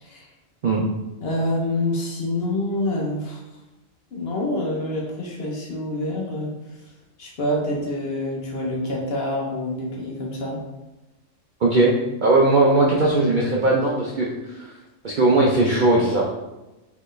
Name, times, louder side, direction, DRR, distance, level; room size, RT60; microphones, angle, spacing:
voice 1, 1.2-3.4 4.1-6.8 7.2-10.6, left 1 dB, 55° left, -2 dB, 1.0 m, -27 dB
voice 2, 11.6-11.9 12.2-14.7 15.0-16.3, right 2 dB, 60° right, -3 dB, 0.5 m, -19 dB
4.4 x 3.2 x 3.1 m, 1.0 s
omnidirectional pair, 1.4 m